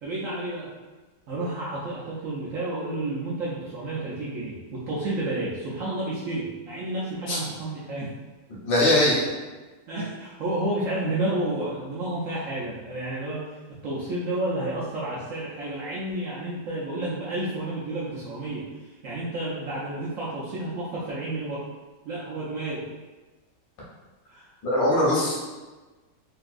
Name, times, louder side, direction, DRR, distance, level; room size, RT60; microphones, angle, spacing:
voice 1, 0.0-0.7 1.3-8.1 9.9-13.4 13.7-18.6 19.0-21.6 22.0-22.8 24.3-24.5, right 1 dB, 70° right, -7 dB, 0.8 m, -31 dB
voice 2, 8.7-9.2 24.6-25.3, left 1 dB, 85° left, -7 dB, 1.9 m, -21 dB
3.9 x 2.6 x 2.4 m, 1.2 s
omnidirectional pair, 1.9 m